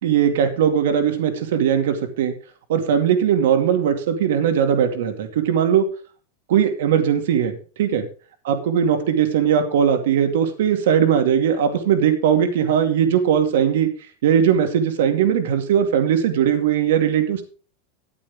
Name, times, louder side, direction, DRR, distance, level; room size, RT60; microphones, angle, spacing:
voice 1, 0.0-2.3 2.7-5.8 6.5-8.1 8.5-13.9 14.2-17.4, right 8 dB, 80° right, 6 dB, 2.3 m, -19 dB
13.5 x 9.1 x 3.7 m, 0.37 s
supercardioid pair, 150°, 0 cm